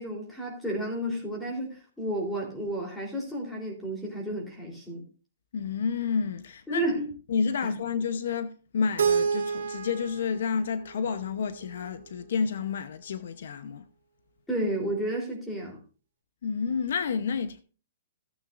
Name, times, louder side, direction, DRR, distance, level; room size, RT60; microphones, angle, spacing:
voice 1, 0.0-5.0 6.7-7.1 7.6-7.7 14.5-15.8, right 1 dB, 5° left, 3.5 m, -32 dB
voice 2, 5.5-6.9 7.3-13.8 16.4-17.6, left 6 dB, 65° left, 0.9 m, -30 dB
Keyboard (musical), 9.0-11.9, right 6 dB, 85° right, 1.9 m, -30 dB
16.0 x 8.6 x 2.6 m
hypercardioid pair, 170°, 0 cm